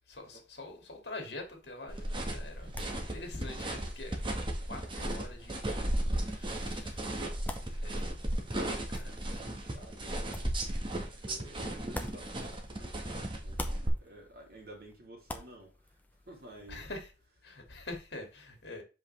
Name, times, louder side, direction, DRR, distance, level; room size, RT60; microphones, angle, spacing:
voice 1, 0.0-2.8 3.1-4.2 4.6-9.6 10.9-11.2 16.7-17.1 17.4-18.8, left 2 dB, 65° left, 2.6 m, -46 dB
sound 1, 1.9-13.0 13.3-16.7, left 1 dB, 10° left, 0.9 m, -49 dB
sound 2, 1.9-13.9, right 1 dB, 30° right, 1.6 m, -35 dB
voice 2, 9.2-10.9 11.2-16.0 16.3-16.8, right 1 dB, 55° right, 3.5 m, -52 dB
7.8 x 5.5 x 3.5 m
head